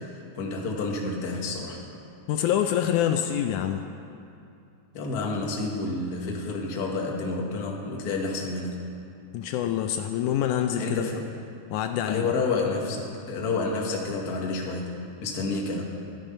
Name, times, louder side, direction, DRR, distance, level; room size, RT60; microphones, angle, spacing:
voice 1, 0.0-1.8 4.9-8.9 10.8-11.2 12.1-14.9 15.2-15.8, left 3 dB, 40° left, -1 dB, 1.5 m, -29 dB
voice 2, 2.3-3.9 9.3-11.1 11.7-12.3, left 10 dB, 80° left, 6 dB, 2.0 m, -26 dB
13.0 x 12.5 x 5.5 m, 2.6 s
omnidirectional pair, 3.7 m